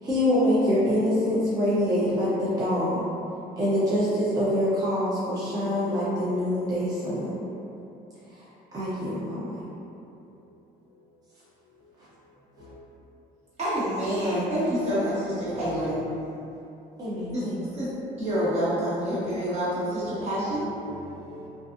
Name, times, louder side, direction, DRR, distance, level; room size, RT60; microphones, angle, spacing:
voice 1, 0.0-3.1 3.6-7.4 8.3-8.4 8.7-9.6 17.0-17.8, equal, 20° right, 0.6 m, -25 dB
voice 2, 13.6-16.0 17.3-17.4 17.7-17.9 18.2-20.6, equal, 40° right, 1.2 m, -27 dB
voice 3, 15.6-16.2 20.2-20.3 20.5-21.5, left 1 dB, 75° right, 1.1 m, -45 dB
2.4 x 2.3 x 2.5 m
cardioid pair, 110°, 17 cm